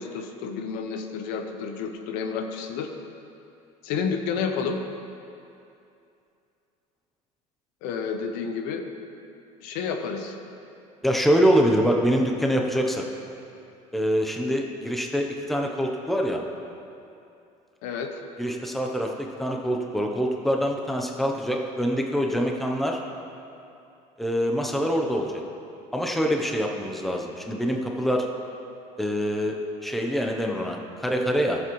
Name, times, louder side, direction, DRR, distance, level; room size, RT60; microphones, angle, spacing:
voice 1, 0.0-2.9 3.8-4.8 7.8-8.8 9.6-10.4 17.8-18.2, left 6 dB, 85° left, 5 dB, 0.8 m, -30 dB
voice 2, 11.0-13.0 13.9-16.4 18.4-23.0 24.2-25.4 25.9-28.3 29.0-29.6 29.8-31.6, equal, ahead, 1 dB, 0.7 m, -25 dB
14.0 x 7.6 x 3.1 m, 2.7 s
cardioid pair, 135°, 14 cm